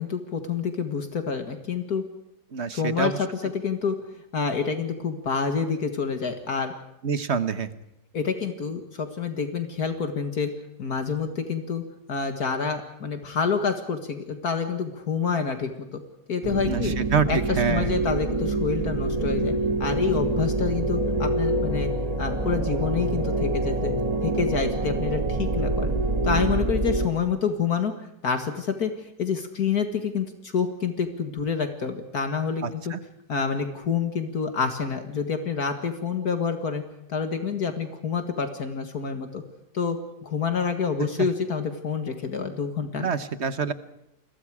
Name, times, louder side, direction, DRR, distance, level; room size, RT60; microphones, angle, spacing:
voice 1, 0.0-2.0 2.7-4.0 4.3-6.7 8.1-10.5 10.8-11.8 12.1-16.0 16.3-16.9 17.3-19.5 19.8-21.9 22.2-23.9 24.2-25.9 26.2-32.9 33.3-36.8 37.1-39.4 39.7-43.1, left 6 dB, 65° left, 7 dB, 2.2 m, -28 dB
voice 2, 2.5-3.2 7.0-7.7 16.7-17.9 32.6-33.0 41.2-41.3 43.0-43.7, right 6 dB, 45° right, 12 dB, 1.3 m, -26 dB
sound 1, 16.4-27.1, right 2 dB, 25° right, 2.0 m, -26 dB
29.5 x 21.5 x 4.9 m, 0.84 s
omnidirectional pair, 1.8 m